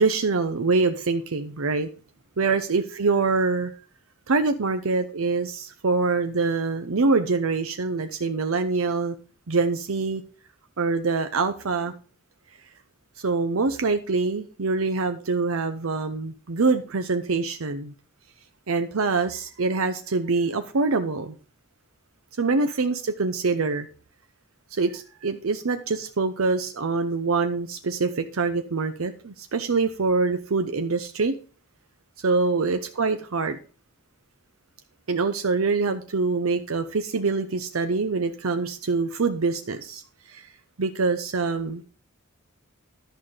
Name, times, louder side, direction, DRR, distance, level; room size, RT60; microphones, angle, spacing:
voice 1, 0.0-1.9 2.4-3.7 4.3-9.1 9.5-10.2 10.8-11.9 13.2-17.9 18.7-21.4 22.4-23.9 24.7-31.4 32.2-33.6 35.1-40.0 40.3-40.5 40.8-41.8, right 4 dB, 85° right, 8 dB, 0.7 m, -25 dB
11.0 x 5.8 x 5.0 m, 0.36 s
head